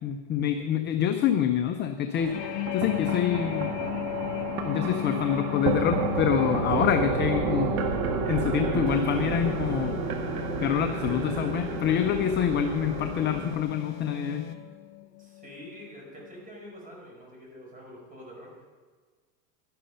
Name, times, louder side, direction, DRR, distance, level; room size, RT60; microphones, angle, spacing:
voice 1, 0.0-3.7 4.6-7.7 8.3-9.9 10.6-14.4, left 9 dB, 25° left, 6 dB, 0.5 m, -26 dB
sound 1, 2.2-13.6, right 5 dB, 55° right, 1.6 m, -31 dB
sound 2, 2.3-15.9 16.2-16.5, left 21 dB, 75° left, 0.6 m, -37 dB
sound 3, 8.9-14.7, left 11 dB, 50° left, 1.2 m, -40 dB
voice 2, 15.0-18.7, equal, 15° right, -2 dB, 4.9 m, -46 dB
11.5 x 11.0 x 5.5 m, 1.5 s
supercardioid pair, 130°, 49 cm